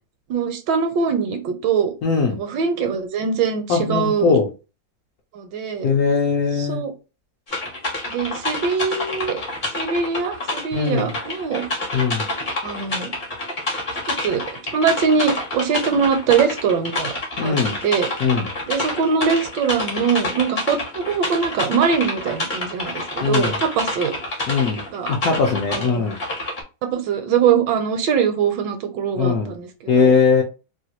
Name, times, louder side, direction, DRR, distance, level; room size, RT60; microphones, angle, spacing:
voice 1, 0.3-1.9 2.3-4.3 5.3-5.9 6.5-6.9 8.1-9.4 9.8-11.7 12.6-13.1 14.1-14.4 14.7-17.5 17.8-18.1 18.7-24.1 24.9-25.1 25.7-26.1 26.8-30.1, right 6 dB, 75° right, 7 dB, 1.2 m, -22 dB
voice 2, 2.0-2.4 3.7-4.5 5.8-6.8 10.7-11.1 11.9-12.3 17.4-17.8 18.2-18.5 23.2-23.6 24.5-24.8 25.1-26.1 29.2-29.5 29.9-30.4, left 5 dB, 70° left, 1 dB, 0.9 m, -20 dB
sound 1, 7.5-26.6, left 2 dB, 40° left, 0.7 m, -28 dB
3.1 x 2.3 x 2.8 m, 0.31 s
omnidirectional pair, 2.0 m